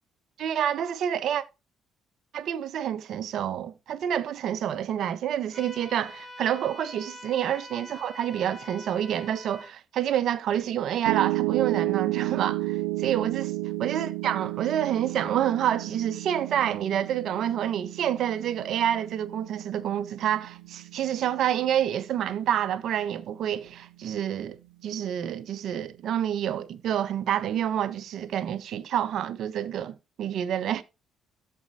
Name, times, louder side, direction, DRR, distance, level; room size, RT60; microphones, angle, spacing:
voice 1, 0.4-1.4 2.3-13.5 13.8-24.6 24.8-30.8, right 10 dB, 65° right, 1.0 m, -28 dB
sound 1, 5.5-9.7, left 1 dB, 10° left, 4.2 m, -45 dB
Piano, 11.1-23.2, right 19 dB, 85° right, 0.4 m, -32 dB
13.5 x 4.6 x 2.7 m
hypercardioid pair, 55°, 0 cm